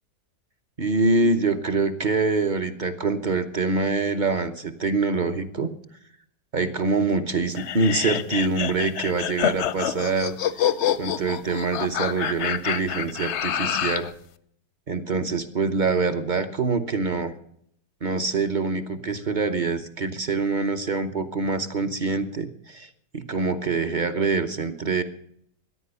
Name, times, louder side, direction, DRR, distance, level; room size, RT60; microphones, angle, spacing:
voice 1, 0.8-5.7 6.5-10.3 11.0-14.1 14.9-17.3 18.0-25.0, right 3 dB, 35° right, 9 dB, 0.8 m, -25 dB
sound 1, 7.6-14.1, left 9 dB, 60° left, 0.8 m, -27 dB
14.0 x 10.5 x 6.8 m, 0.67 s
omnidirectional pair, 1.7 m